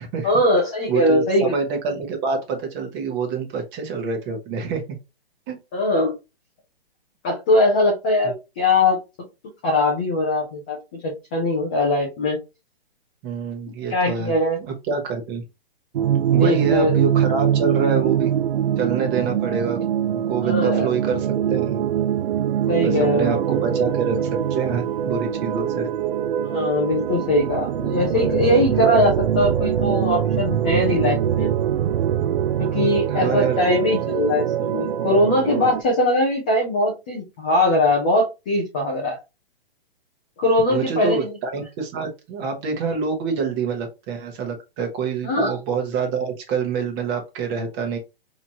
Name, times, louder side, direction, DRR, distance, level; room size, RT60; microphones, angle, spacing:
voice 1, 0.2-1.5 5.7-6.1 7.2-9.0 9.6-12.4 13.9-14.6 16.3-16.9 20.4-20.9 22.7-23.4 26.4-31.5 32.6-39.2 40.4-41.4 45.2-45.5, left 1 dB, 10° left, -2 dB, 0.3 m, -21 dB
voice 2, 0.9-4.8 5.5-5.6 13.2-14.3 14.6-15.4 16.3-18.3 18.8-19.8 20.1-21.8 22.8-24.2 24.5-25.9 33.1-33.6 40.7-48.0, right 5 dB, 25° right, 3 dB, 1.1 m, -26 dB
sound 1, 16.0-35.8, right 9 dB, 60° right, 0.5 m, -23 dB
4.1 x 3.0 x 2.8 m, 0.25 s
hypercardioid pair, 150°, 30 cm